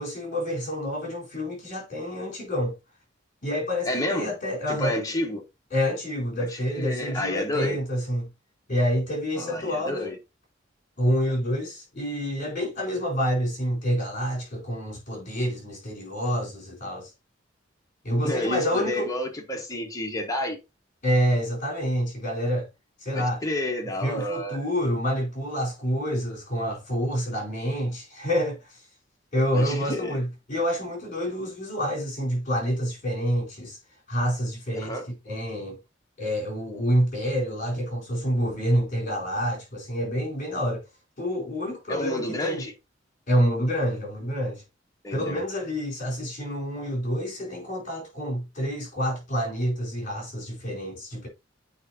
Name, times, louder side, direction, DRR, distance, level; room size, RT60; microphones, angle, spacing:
voice 1, 0.0-2.8 3.4-5.0 5.7-8.3 8.7-10.1 11.0-17.1 18.0-19.1 21.0-22.7 23.0-23.4 24.0-28.8 29.3-33.8 34.1-35.8 36.2-40.8 41.2-42.6 43.3-44.6 45.1-51.3, equal, 45° left, 4.3 m, -28 dB
voice 2, 3.8-4.3 4.7-5.4 6.4-7.8 9.3-10.2 18.2-20.6 23.1-24.7 29.5-30.2 34.8-35.0 41.9-42.7 45.0-45.4, left 1 dB, 20° left, 1.6 m, -30 dB
8.7 x 4.9 x 2.9 m
head